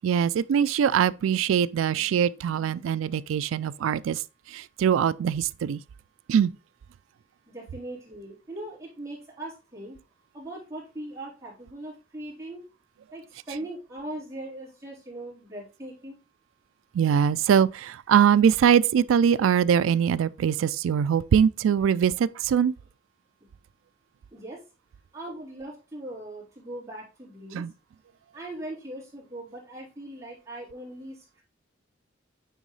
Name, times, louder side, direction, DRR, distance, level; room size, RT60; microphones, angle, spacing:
voice 1, 0.0-4.2 4.5-5.8 6.3-6.5 16.9-22.7 27.5-27.7, right 8 dB, 90° right, 0.3 m, -22 dB
voice 2, 7.5-10.0 10.3-12.6 13.1-16.2 24.3-24.6 25.1-27.7 28.3-31.4, right 1 dB, 15° right, 3.6 m, -40 dB
9.2 x 3.7 x 3.1 m
head